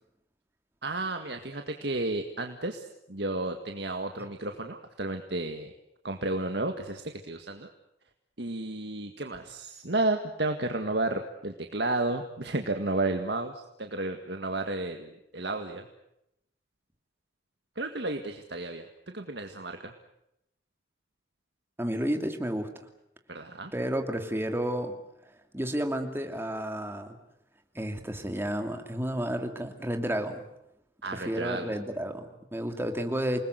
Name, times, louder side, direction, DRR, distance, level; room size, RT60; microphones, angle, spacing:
voice 1, 0.8-5.7 6.0-7.7 8.4-15.9 17.8-18.9 19.1-19.9 23.3-23.7 31.0-31.7, right 2 dB, 65° right, 5 dB, 1.9 m, -32 dB
voice 2, 21.8-22.7 23.7-25.0 25.5-27.2 27.7-30.4 31.1-33.4, equal, 15° right, 5 dB, 2.7 m, -31 dB
28.5 x 20.0 x 8.2 m, 0.82 s
head